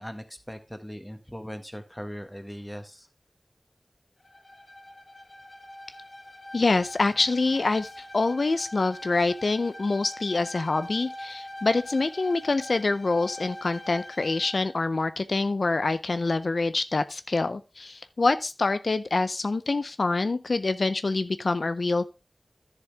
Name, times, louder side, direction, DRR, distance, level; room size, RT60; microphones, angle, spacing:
voice 1, 0.0-3.1, equal, 10° left, 8 dB, 1.5 m, -39 dB
Bowed string instrument, 4.2-14.7, left 1 dB, 55° left, 1.3 m, -43 dB
voice 2, 6.5-22.1, left 3 dB, 85° left, 12 dB, 0.5 m, -26 dB
11.0 x 6.9 x 3.4 m, 0.28 s
wide cardioid pair, 45°, 0 cm